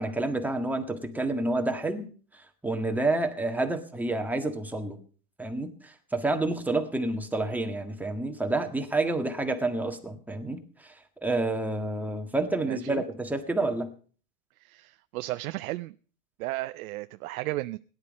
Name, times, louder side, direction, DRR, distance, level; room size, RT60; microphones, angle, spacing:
voice 1, 0.0-5.0 5.4-13.9, right 2 dB, 5° right, 4 dB, 1.6 m, -29 dB
voice 2, 12.7-13.0 14.6-15.9 16.4-17.8, right 18 dB, 70° right, 12 dB, 0.6 m, -34 dB
17.0 x 11.0 x 5.3 m, 0.43 s
supercardioid pair, 130°, 44 cm